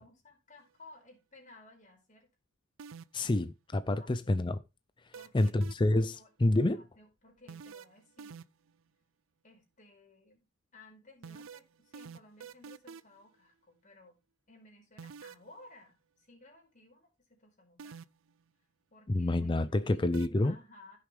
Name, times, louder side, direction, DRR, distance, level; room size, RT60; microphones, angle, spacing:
voice 1, 0.0-2.3 4.0-4.4 5.1-5.5 6.1-6.3 6.6-8.4 9.4-10.5 10.7-14.2 14.5-18.0 18.9-21.0, left 2 dB, 40° left, 4.8 m, -57 dB
Arp variaton menu, 2.8-3.3 5.1-6.0 7.5-8.7 11.2-13.2 15.0-15.5 17.8-18.3 20.1-20.3, right 6 dB, 70° right, 0.5 m, -47 dB
voice 2, 3.1-4.6 5.3-6.8 19.1-20.5, left 2 dB, 25° left, 0.5 m, -28 dB
15.5 x 6.8 x 3.4 m
head